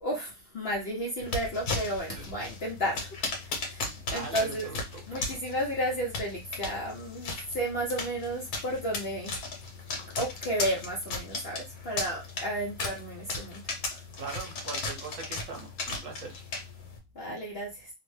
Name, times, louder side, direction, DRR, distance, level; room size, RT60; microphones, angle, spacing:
voice 1, 0.0-4.7 5.1-9.4 10.2-14.0 17.1-17.9, equal, 55° left, -2 dB, 0.7 m, -33 dB
sound 1, 1.2-17.0, left 3 dB, 75° left, 1.3 m, -37 dB
voice 2, 3.8-5.2 14.2-16.4 17.3-17.4, right 4 dB, 60° right, 2 dB, 1.2 m, -41 dB
2.9 x 2.0 x 3.1 m, 0.24 s
omnidirectional pair, 1.6 m